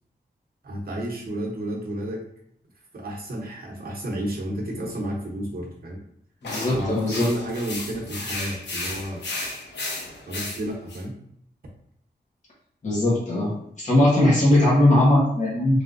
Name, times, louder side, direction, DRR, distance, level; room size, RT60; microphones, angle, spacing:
voice 1, 0.6-2.2 2.9-6.0 6.7-9.2 10.3-11.2, right 1 dB, 60° right, -1 dB, 0.8 m, -31 dB
sound 1, 6.4-11.0, left 2 dB, 80° left, 0.7 m, -34 dB
voice 2, 6.4-7.3 12.8-15.8, left 1 dB, 45° left, -6 dB, 1.0 m, -20 dB
3.3 x 2.6 x 2.5 m, 0.68 s
wide cardioid pair, 155°, 18 cm